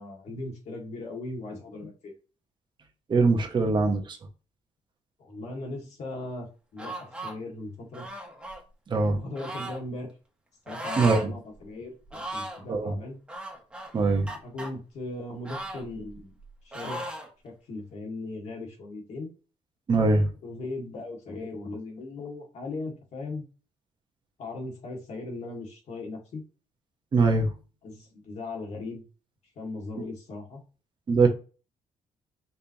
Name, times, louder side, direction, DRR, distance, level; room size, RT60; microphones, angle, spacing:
voice 1, 0.0-2.1 5.2-6.5 6.7-8.1 9.1-10.1 10.7-13.2 14.4-16.3 16.6-17.0 17.4-19.3 20.4-23.4 24.4-26.4 27.8-29.0 29.6-30.6, left 2 dB, 60° left, 2.0 m, -38 dB
voice 2, 3.1-4.2 8.9-9.2 11.0-11.3 12.7-12.9 13.9-14.3 19.9-20.3 27.1-27.5 31.1-31.3, right 3 dB, 35° right, 1.0 m, -22 dB
sound 1, 6.8-7.3 7.9-8.6 9.4-9.8 10.7-11.3 11.6-11.7 12.1-12.6 13.3-14.7 15.4-16.4 16.7-17.3, right 1 dB, 10° right, 1.2 m, -37 dB
5.4 x 3.3 x 2.9 m
cardioid pair, 135°, 13 cm